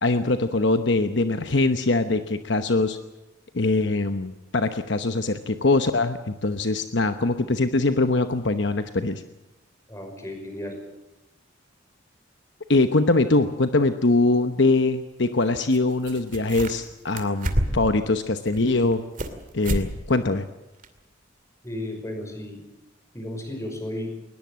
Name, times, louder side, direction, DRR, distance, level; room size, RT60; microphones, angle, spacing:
voice 1, 0.0-3.0 3.5-9.2 12.7-19.0 19.5-20.5, left 2 dB, 60° left, 8 dB, 1.0 m, -22 dB
voice 2, 9.9-10.8 21.6-22.6 23.1-24.1, left 1 dB, 15° left, 4 dB, 5.6 m, -34 dB
sound 1, 15.7-15.8 16.0-16.9 17.2-18.0 18.5-19.4 19.6-19.9 20.2-20.3 20.8-20.9, right 1 dB, 40° right, 2.5 m, -28 dB
21.5 x 20.0 x 7.5 m, 1.0 s
head